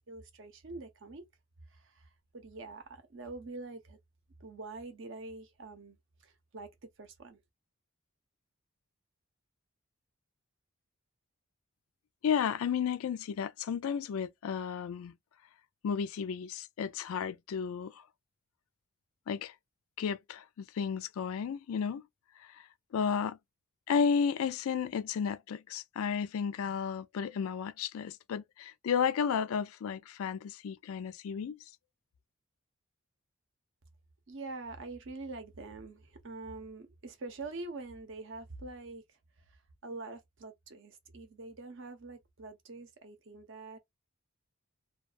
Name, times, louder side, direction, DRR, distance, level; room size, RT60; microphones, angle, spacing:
voice 1, 0.1-1.2 1.7-4.0 4.4-7.4 34.3-43.8, right 3 dB, 55° right, 0.7 m, -45 dB
voice 2, 12.2-15.1 15.8-18.0 19.3-19.5 20.0-22.0 22.4-22.7 22.9-23.4 23.9-31.6, left 7 dB, 70° left, 0.3 m, -33 dB
2.3 x 2.3 x 2.4 m
head